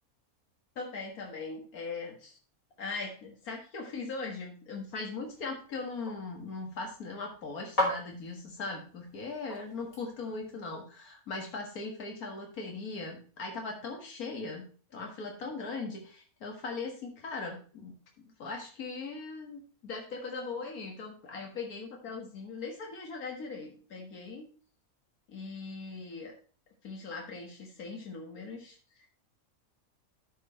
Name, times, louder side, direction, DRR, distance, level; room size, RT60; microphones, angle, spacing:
voice 1, 0.8-2.4 2.8-14.7 14.9-24.4 25.3-26.3 26.8-29.1, left 3 dB, 90° left, 1 dB, 2.0 m, -40 dB
sound 1, 4.7-10.6, left 1 dB, 40° left, 3.0 m, -39 dB
13.0 x 4.7 x 4.3 m, 0.39 s
omnidirectional pair, 1.5 m